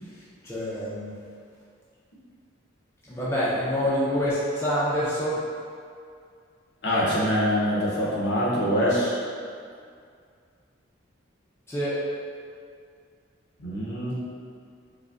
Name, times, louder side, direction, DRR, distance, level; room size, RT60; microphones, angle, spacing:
voice 1, 0.4-1.1 3.1-5.4 11.7-12.0, equal, 10° left, -10 dB, 0.4 m, -26 dB
voice 2, 6.8-9.2 13.6-14.1, equal, 60° left, -6 dB, 0.7 m, -24 dB
4.8 x 2.1 x 2.4 m, 2.3 s
head